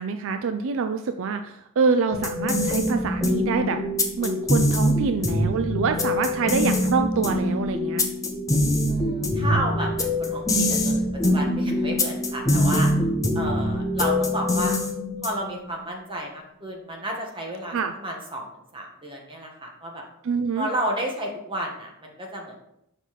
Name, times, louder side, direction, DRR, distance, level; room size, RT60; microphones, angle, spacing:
voice 1, 0.0-3.8 4.2-8.1 17.7-17.9 20.2-20.7, right 5 dB, 60° right, 8 dB, 0.4 m, -26 dB
sound 1, 2.1-15.6, left 1 dB, 15° left, 0.8 m, -24 dB
voice 2, 8.9-12.9 13.3-14.8 15.2-17.7 18.0-20.0 20.5-22.6, right 1 dB, 25° right, 0 dB, 1.6 m, -32 dB
7.2 x 5.6 x 4.1 m, 0.78 s
head